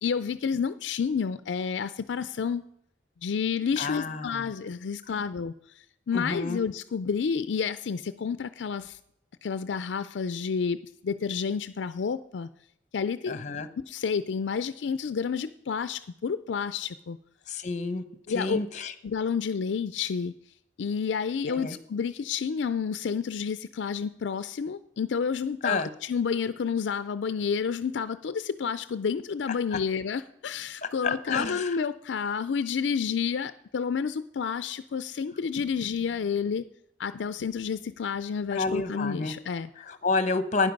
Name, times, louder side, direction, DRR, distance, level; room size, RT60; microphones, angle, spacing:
voice 1, 0.0-2.6 3.2-5.5 6.1-9.0 9.4-10.8 11.0-12.5 12.9-13.4 13.8-17.2 18.3-18.6 19.0-20.3 20.8-36.6 37.0-39.7, left 6 dB, 75° left, 13 dB, 0.4 m, -30 dB
voice 2, 3.8-4.5 5.1-5.2 6.1-6.6 13.3-13.7 17.5-18.0 18.3-18.9 21.5-21.8 25.6-25.9 29.7-29.8 30.8-31.8 38.5-39.3 39.8-40.7, left 3 dB, 40° left, 12 dB, 0.9 m, -29 dB
12.0 x 9.7 x 5.3 m, 0.77 s
head